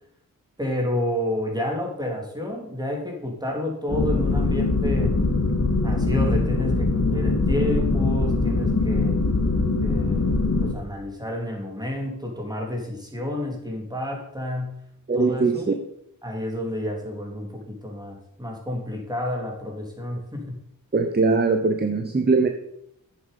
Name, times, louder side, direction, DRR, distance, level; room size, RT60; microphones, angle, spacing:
voice 1, 0.6-5.1 5.8-9.2 9.8-10.3 10.6-14.8 15.1-15.7 16.2-20.6, left 1 dB, 10° right, 0 dB, 3.4 m, -30 dB
sound 1, 3.9-10.7, left 3 dB, 45° left, 1.9 m, -22 dB
voice 2, 15.1-15.7 20.9-22.5, right 4 dB, 30° right, 6 dB, 0.9 m, -21 dB
8.6 x 7.6 x 5.4 m, 0.76 s
cardioid pair, 65°, 35 cm